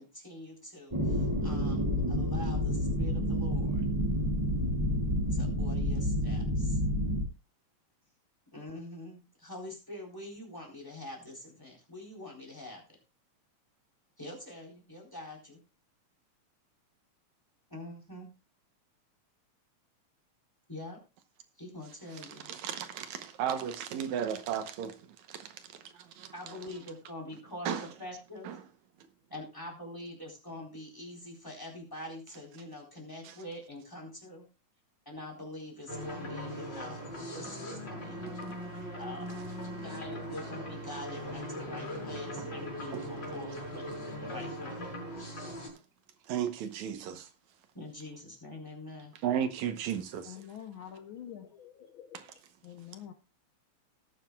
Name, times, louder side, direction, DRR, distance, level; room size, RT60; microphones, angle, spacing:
voice 1, 0.0-3.8 5.3-6.8 8.5-12.8 14.2-15.6 17.7-18.3 20.7-21.0 21.6-22.5 26.3-28.5 29.3-34.5 35.1-37.0 37.3-38.2 39.0-39.3 39.6-44.8 47.7-49.1, left 1 dB, 5° left, 3.7 m, -45 dB
sound 1, 0.9-7.2, equal, 15° right, 1.6 m, -29 dB
voice 2, 22.4-25.0 25.3-26.3 27.7-27.9 28.4-28.6 33.2-33.3 38.4-38.6 42.4-42.5 42.9-43.3 46.3-47.3 49.2-50.3 52.1-52.3, right 9 dB, 75° right, 2.3 m, -35 dB
sound 2, 35.9-45.7, equal, 35° left, 5.6 m, -40 dB
voice 3, 50.3-52.2 52.6-53.1, left 9 dB, 85° left, 1.1 m, -46 dB
19.0 x 9.1 x 2.3 m
omnidirectional pair, 3.4 m